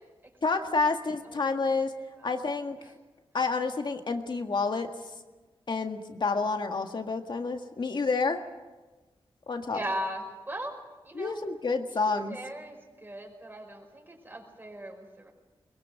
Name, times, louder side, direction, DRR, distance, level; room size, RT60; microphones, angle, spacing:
voice 1, 0.4-2.0 2.2-2.8 3.3-4.9 5.7-8.4 9.5-9.8 11.2-12.4, left 4 dB, 55° left, 5 dB, 1.8 m, -29 dB
voice 2, 1.2-1.8 2.2-2.5 2.8-2.9 9.7-10.8 11.0-11.4 11.8-15.3, right 1 dB, 20° right, 3 dB, 5.2 m, -39 dB
22.5 x 21.5 x 7.8 m, 1.2 s
wide cardioid pair, 105°, 10 cm